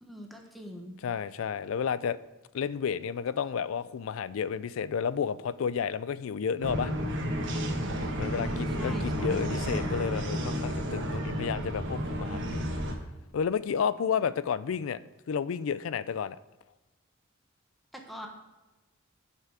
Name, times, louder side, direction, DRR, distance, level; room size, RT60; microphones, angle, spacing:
voice 1, 0.0-1.0 8.4-9.6 14.1-14.3 17.9-18.3, equal, ahead, 2 dB, 1.1 m, -44 dB
voice 2, 1.0-2.2 2.5-6.9 8.2-12.6 13.3-15.0 15.3-16.4, left 7 dB, 75° left, 16 dB, 0.4 m, -31 dB
sound 1, 6.6-12.9, equal, 60° right, 1.2 m, -31 dB
9.4 x 5.7 x 4.8 m, 1.1 s
head